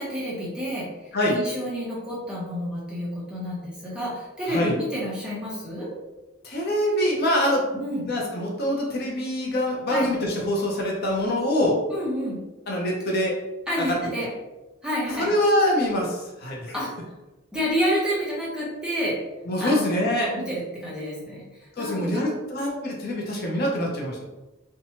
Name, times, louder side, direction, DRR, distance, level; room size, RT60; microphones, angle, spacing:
voice 1, 0.0-5.9 7.7-8.1 9.9-10.1 11.9-12.4 13.7-14.3 14.8-15.3 16.7-16.9 17.5-19.2 19.6-20.1 20.3-21.4 21.8-22.2, equal, 5° right, -7 dB, 0.7 m, -29 dB
voice 2, 6.4-7.7 8.1-11.8 12.7-13.4 13.8-14.0 15.2-16.8 19.5-20.3 21.8-24.2, left 1 dB, 50° left, -2 dB, 0.5 m, -24 dB
2.8 x 2.2 x 2.7 m, 1.1 s
head